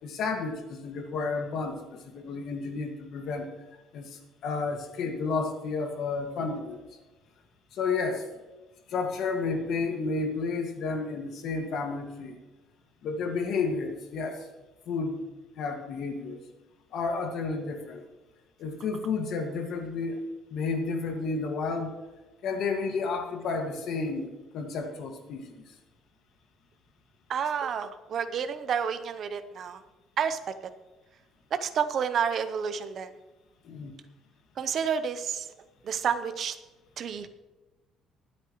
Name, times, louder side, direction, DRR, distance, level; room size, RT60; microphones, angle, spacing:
voice 1, 0.0-3.5 3.9-6.8 7.7-8.3 8.9-12.4 13.0-14.5 14.9-15.2 15.6-16.4 16.9-18.0 18.6-21.9 22.4-25.5 33.6-33.9, left 4 dB, 50° left, 4 dB, 1.9 m, -31 dB
voice 2, 27.3-29.8 30.2-30.5 31.5-33.1 34.6-35.5 35.8-36.6 37.0-37.3, right 7 dB, 40° right, 10 dB, 0.8 m, -30 dB
24.0 x 8.4 x 3.1 m, 1.1 s
cardioid pair, 175°, 0 cm